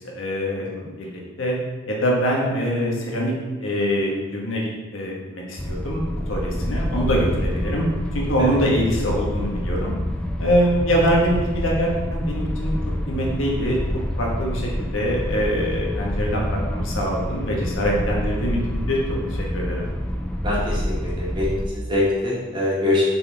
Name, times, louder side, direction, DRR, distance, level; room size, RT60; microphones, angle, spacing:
voice 1, 0.0-1.6 1.9-3.3 3.6-7.8 8.1-9.9 10.4-12.8 13.1-13.8 14.2-19.0 19.3-19.8, equal, 75° left, -2 dB, 1.4 m, -24 dB
sound 1, 5.6-21.7, equal, 5° left, 0.3 m, -27 dB
voice 2, 20.4-23.0, left 2 dB, 25° right, -6 dB, 1.6 m, -23 dB
6.8 x 4.1 x 3.5 m, 1.3 s
head